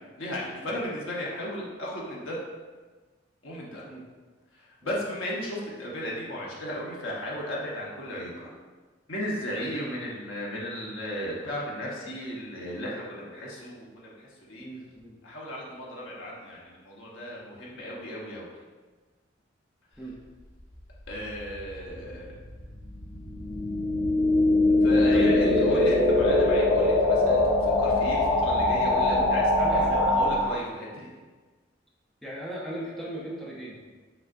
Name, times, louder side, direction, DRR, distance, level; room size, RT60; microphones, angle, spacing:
voice 1, 0.2-2.4 3.4-3.8 4.5-8.5 9.1-14.7 15.2-18.5 21.1-22.3 24.8-31.1, equal, 90° left, -4 dB, 1.1 m, -35 dB
voice 2, 14.6-15.2 20.0-20.1 25.1-25.9 29.6-30.2 32.2-33.8, right 1 dB, ahead, -5 dB, 0.6 m, -36 dB
sound 1, 21.2-30.5, left 2 dB, 65° left, 1.3 m, -23 dB
5.6 x 3.5 x 2.6 m, 1.4 s
head